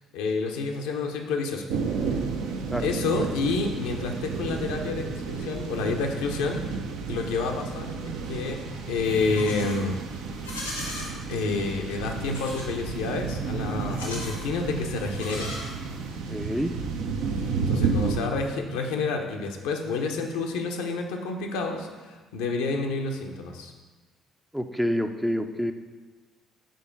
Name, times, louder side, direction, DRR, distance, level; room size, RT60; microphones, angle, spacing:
voice 1, 0.1-1.7 2.0-2.3 2.8-6.6 7.1-10.0 11.3-15.5 17.7-23.7, left 4 dB, 70° left, 3 dB, 0.6 m, -29 dB
sound 1, 1.7-18.2, right 5 dB, 65° right, 0.5 m, -31 dB
Livestock farm animals working animals, 9.0-9.8 10.3-11.1 12.2-12.7 13.8-14.5 15.0-16.1, left 2 dB, 90° left, 1.0 m, -38 dB
voice 2, 16.3-16.7 24.5-25.7, equal, 5° right, 7 dB, 0.4 m, -27 dB
5.2 x 4.4 x 4.9 m, 1.3 s
figure-of-eight pair, 45°, 0 cm